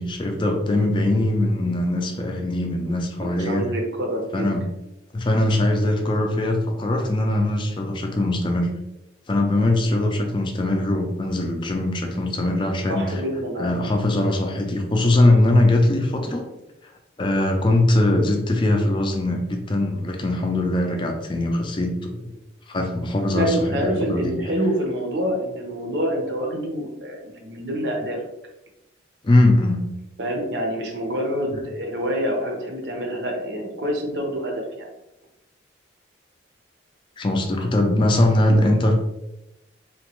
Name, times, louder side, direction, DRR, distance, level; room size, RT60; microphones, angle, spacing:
voice 1, 0.0-3.7 4.3-4.7 5.1-8.7 9.3-13.2 13.6-16.4 17.2-22.3 22.7-24.4 29.2-29.8 37.2-38.9, left 1 dB, 25° left, 3 dB, 0.4 m, -21 dB
voice 2, 3.2-4.5 12.9-13.7 17.7-17.8 23.3-28.2 30.2-34.9, equal, 60° right, 1 dB, 0.7 m, -26 dB
2.9 x 2.2 x 2.9 m, 0.90 s
head